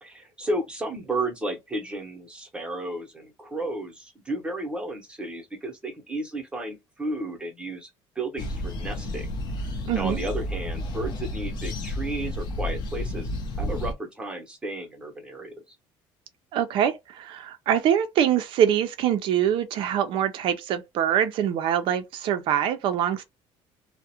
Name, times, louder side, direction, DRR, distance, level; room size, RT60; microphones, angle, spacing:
voice 1, 0.0-7.9 8.2-9.3 9.9-13.3 13.6-15.8, right 2 dB, 10° right, 0.7 m, -33 dB
sound 1, 8.4-13.9, left 1 dB, 45° left, 0.5 m, -31 dB
voice 2, 9.9-10.2 16.5-23.2, right 9 dB, 50° right, 0.4 m, -24 dB
2.3 x 2.0 x 2.8 m
cardioid pair, 165°, 11 cm